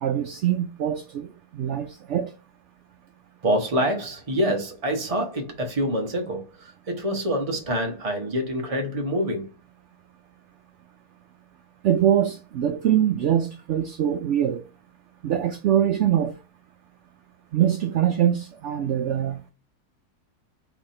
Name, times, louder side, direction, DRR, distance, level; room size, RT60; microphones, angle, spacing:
voice 1, 0.0-2.3 11.8-14.6 15.2-16.3 17.5-19.4, right 10 dB, 70° right, 0.7 m, -23 dB
voice 2, 3.4-9.5, equal, 25° right, 0.8 m, -26 dB
4.1 x 2.9 x 4.1 m
omnidirectional pair, 1.7 m